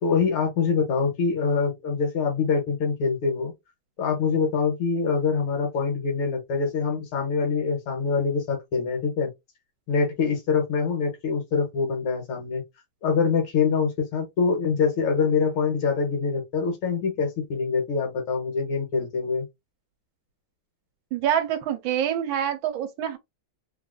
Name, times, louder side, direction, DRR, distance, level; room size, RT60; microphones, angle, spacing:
voice 1, 0.0-3.5 4.0-9.3 9.9-12.6 13.0-19.5, left 5 dB, 90° left, 1.9 m, -24 dB
voice 2, 21.1-23.2, right 10 dB, 75° right, 1.4 m, -26 dB
3.9 x 2.4 x 2.2 m
omnidirectional pair, 2.3 m